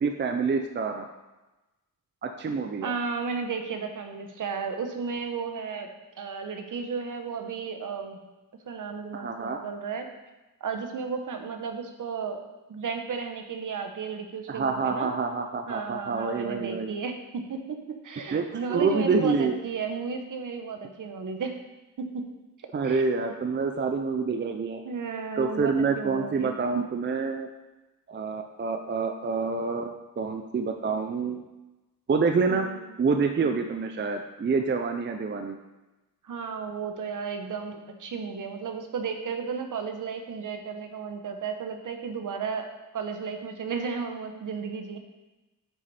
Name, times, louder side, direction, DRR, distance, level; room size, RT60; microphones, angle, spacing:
voice 1, 0.0-1.1 2.2-2.9 9.1-9.6 14.5-16.9 18.3-18.4 18.7-19.6 22.7-24.8 25.4-27.5 28.1-31.4 32.1-32.7 33.0-35.6, right 4 dB, 30° right, 5 dB, 0.5 m, -27 dB
voice 2, 2.8-5.9 6.1-8.2 8.7-10.1 10.6-12.4 12.7-15.1 15.7-21.6 22.0-22.2 22.6-23.0 24.8-26.5 32.5-32.8 36.2-45.0, right 5 dB, 60° right, 5 dB, 1.1 m, -34 dB
9.2 x 6.2 x 4.2 m, 1.1 s
wide cardioid pair, 155°, 36 cm